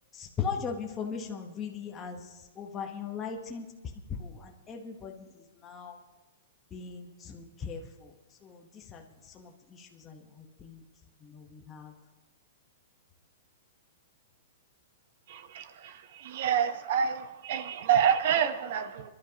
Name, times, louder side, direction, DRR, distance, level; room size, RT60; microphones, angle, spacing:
voice 1, 0.1-3.7 4.1-6.0 6.7-8.1 8.4-10.8 11.2-11.9, left 6 dB, 15° left, 1 dB, 1.0 m, -39 dB
voice 2, 16.3-19.0, right 8 dB, 50° right, 10 dB, 0.9 m, -27 dB
27.5 x 12.0 x 2.9 m, 1.2 s
hypercardioid pair, 165°, 0 cm